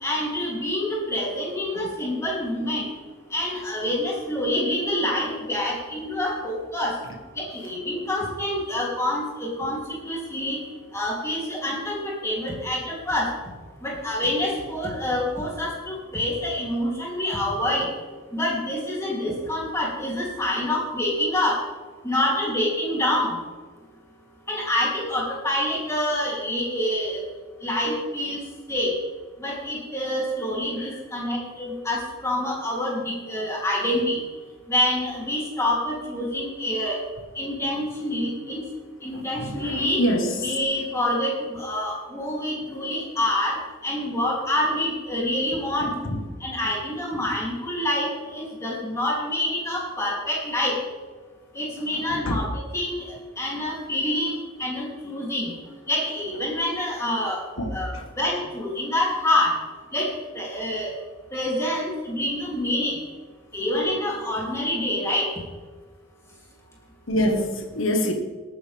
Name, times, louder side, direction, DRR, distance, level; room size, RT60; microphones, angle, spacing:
voice 1, 0.0-2.8 3.3-7.0 7.4-9.8 10.0-10.6 10.9-13.3 13.8-17.9 18.3-21.6 22.0-23.4 24.5-27.2 27.6-28.4 28.7-28.9 29.4-34.2 34.7-37.0 37.3-38.6 39.0-40.0 40.4-45.9 46.4-50.8 51.5-55.5 55.9-57.4 57.7-57.9 58.2-59.5 59.9-60.9 61.3-63.0 63.5-65.3, left 1 dB, 15° left, -3 dB, 3.4 m, -26 dB
voice 2, 39.1-40.3 52.1-52.2 57.6-58.0 67.1-68.1, equal, 80° left, 3 dB, 1.7 m, -25 dB
19.0 x 9.5 x 3.6 m, 1.4 s
head